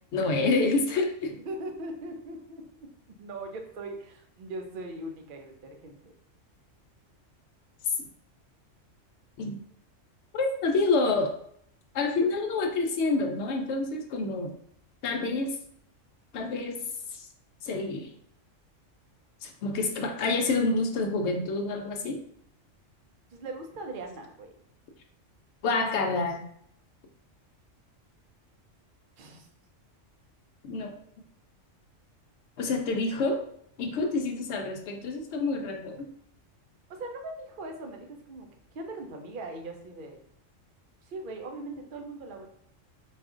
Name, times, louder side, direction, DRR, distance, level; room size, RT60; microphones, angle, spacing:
voice 1, 0.1-1.3 9.4-9.6 10.3-11.3 11.9-14.5 15.0-15.6 16.3-16.8 17.1-17.3 17.6-18.1 19.4-22.2 25.6-26.4 30.6-30.9 32.6-33.4 33.8-36.1, left 3 dB, 65° left, 4 dB, 0.8 m, -28 dB
voice 2, 1.3-2.9 3.2-6.1 23.3-24.5 29.2-29.5 36.9-40.2 41.0-42.5, right 2 dB, 55° right, 4 dB, 0.6 m, -40 dB
4.2 x 2.4 x 2.4 m, 0.67 s
omnidirectional pair, 1.3 m